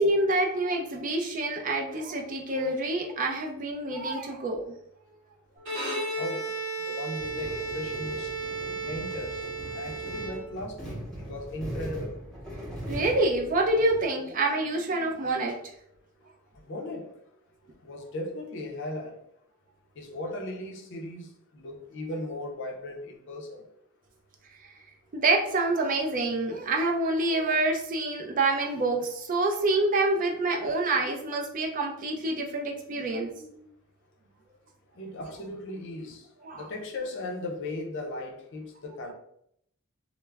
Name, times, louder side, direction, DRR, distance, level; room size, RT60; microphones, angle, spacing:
voice 1, 0.0-4.7 12.9-15.5 25.1-33.5 36.4-36.7, right 2 dB, 40° right, 0.4 m, -27 dB
Bowed string instrument, 5.6-10.8, right 2 dB, 55° right, 0.9 m, -34 dB
voice 2, 6.2-6.5 6.9-8.3 8.9-9.4 9.7-11.0 11.3-12.1 16.7-17.1 17.8-19.1 20.0-21.3 21.5-23.6 35.0-36.2 36.6-39.1, left 1 dB, 55° left, 0.5 m, -37 dB
sound 1, 7.2-14.0, equal, ahead, 0.7 m, -40 dB
2.2 x 2.0 x 3.3 m
head